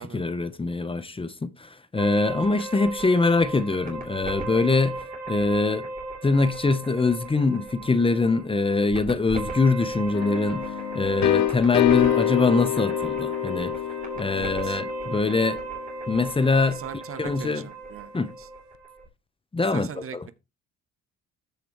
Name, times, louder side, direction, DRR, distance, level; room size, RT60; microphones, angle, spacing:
voice 1, 0.0-5.0 5.3-5.9 6.2-13.8 14.2-15.6 16.1-16.8 17.2-17.7 18.1-18.3 19.5-19.9 20.1-20.2, left 3 dB, 15° left, 0.7 m, -23 dB
sound 1, 2.0-19.1, right 2 dB, 25° right, 3.3 m, -36 dB
sound 2, 10.1-15.8, left 12 dB, 65° left, 0.8 m, -27 dB
voice 2, 14.3-14.8 16.7-18.1 18.4-18.5 19.7-20.3, right 8 dB, 45° right, 0.8 m, -40 dB
13.5 x 4.8 x 3.0 m
cardioid pair, 85°, 30 cm